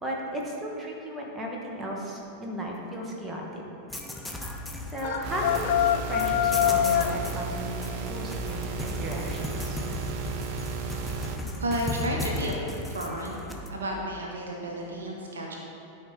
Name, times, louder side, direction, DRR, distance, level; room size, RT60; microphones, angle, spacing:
voice 1, 0.0-3.6 4.9-9.8, equal, 15° right, -2 dB, 1.4 m, -35 dB
sound 1, 3.9-13.7, left 1 dB, 5° left, 0.7 m, -36 dB
sound 2, 5.0-7.2, left 11 dB, 55° left, 0.4 m, -24 dB
sound 3, 5.2-11.4, right 5 dB, 45° right, 0.6 m, -35 dB
voice 2, 11.6-13.3 13.7-15.5, right 1 dB, 70° right, 0 dB, 0.9 m, -32 dB
12.0 x 4.5 x 3.8 m, 2.8 s
figure-of-eight pair, 90°, 0 cm